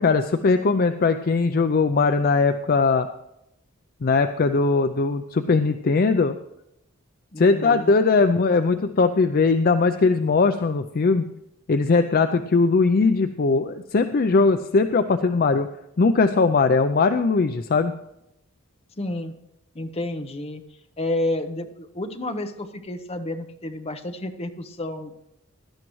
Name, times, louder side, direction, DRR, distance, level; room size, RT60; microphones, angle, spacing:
voice 1, 0.0-3.1 4.0-6.4 7.4-11.3 11.7-15.7 16.0-17.9, left 4 dB, 45° left, 9 dB, 0.4 m, -20 dB
voice 2, 7.3-7.9 19.0-19.3 19.7-20.6 21.0-25.1, left 1 dB, 30° left, 7 dB, 0.9 m, -30 dB
17.0 x 12.0 x 3.1 m, 0.84 s
head